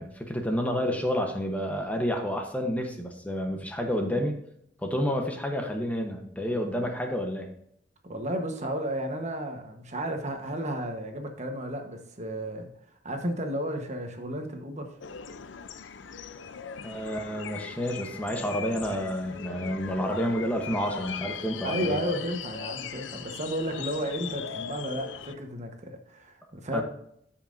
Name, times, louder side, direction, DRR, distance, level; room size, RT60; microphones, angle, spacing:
voice 1, 0.0-4.4 4.8-7.5 16.8-22.0 26.7-26.8, equal, 10° left, 3 dB, 0.9 m, -29 dB
voice 2, 8.0-12.7 13.0-14.9 21.6-26.8, right 1 dB, 40° right, 4 dB, 1.1 m, -33 dB
sound 1, 15.0-25.3, left 7 dB, 80° left, 0.5 m, -39 dB
13.5 x 5.7 x 2.6 m, 0.70 s
head